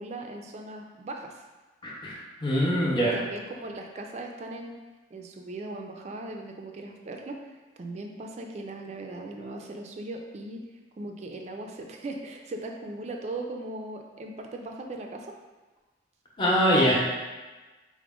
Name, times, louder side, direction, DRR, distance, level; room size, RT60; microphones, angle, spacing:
voice 1, 0.0-1.4 3.1-4.8 5.1-10.6 11.0-15.3, right 2 dB, 35° right, 2 dB, 0.3 m, -38 dB
voice 2, 1.8-3.1 16.4-16.9, equal, 25° left, -5 dB, 0.7 m, -23 dB
4.8 x 2.1 x 3.6 m, 1.2 s
head